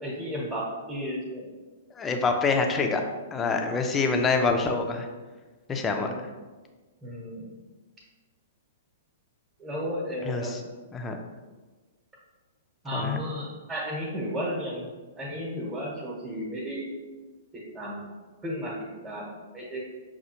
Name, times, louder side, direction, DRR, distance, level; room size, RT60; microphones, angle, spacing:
voice 1, 0.0-1.5 5.9-6.2 7.0-7.5 9.6-10.6 12.8-14.9 15.2-16.9 17.5-18.1 18.4-18.7 19.0-19.8, equal, 15° right, -5 dB, 1.0 m, -33 dB
voice 2, 1.9-3.0 3.3-5.1 5.7-6.1 10.2-10.6 10.9-11.2 12.9-13.2, left 4 dB, 20° left, 3 dB, 0.5 m, -26 dB
5.6 x 2.4 x 2.9 m, 1.3 s
figure-of-eight pair, 110°, 0 cm